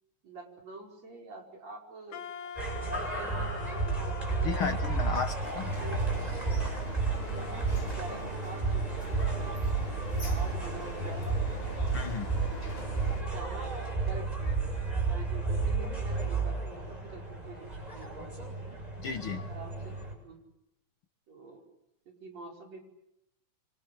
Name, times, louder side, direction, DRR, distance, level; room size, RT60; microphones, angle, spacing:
voice 1, 0.2-2.5 2.8-4.9 5.7-6.0 7.2-10.0 10.2-11.5 13.2-14.7 15.1-17.7 17.9-18.8 19.5-20.4 21.3-21.7 22.1-22.8, right 3 dB, 65° right, 2 dB, 6.6 m, -47 dB
Wind instrument woodwind instrument, 2.1-7.2, left 7 dB, 80° left, 3.1 m, -45 dB
sound 1, 2.6-20.1, right 3 dB, 10° right, 7.4 m, -32 dB
voice 2, 4.4-5.7 11.9-12.3 19.0-19.5, left 6 dB, 55° left, 8 dB, 1.8 m, -34 dB
sound 2, 5.4-13.2, left 2 dB, 20° left, 3.8 m, -45 dB
27.5 x 25.5 x 8.0 m, 0.84 s
omnidirectional pair, 3.3 m